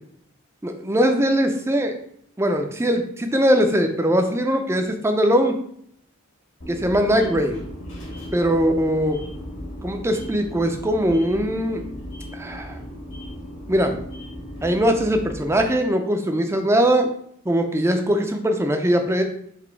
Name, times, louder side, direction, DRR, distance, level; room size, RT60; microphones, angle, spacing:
voice 1, 0.6-2.0 2.4-5.6 6.7-7.6 8.3-9.2 9.8-11.8 12.3-12.8 13.7-14.0 14.6-17.1 17.5-19.2, equal, 10° right, 5 dB, 0.4 m, -21 dB
sound 1, 6.6-15.7, equal, 60° left, 1.5 m, -36 dB
4.0 x 2.7 x 4.5 m, 0.68 s
head